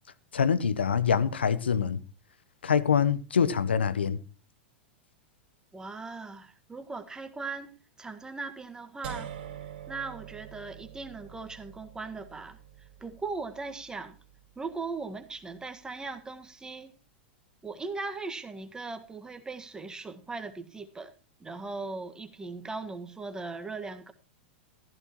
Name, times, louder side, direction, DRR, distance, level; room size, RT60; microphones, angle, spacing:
voice 1, 0.3-2.0 2.6-4.2, left 7 dB, 80° left, 0.9 m, -25 dB
voice 2, 5.7-9.3 9.9-14.2 14.5-17.0 17.6-21.1 21.4-24.1, right 3 dB, 10° right, 1.6 m, -39 dB
sound 1, 9.0-15.0, right 9 dB, 60° right, 3.2 m, -45 dB
15.0 x 14.0 x 3.0 m
hypercardioid pair, 95°, 6 cm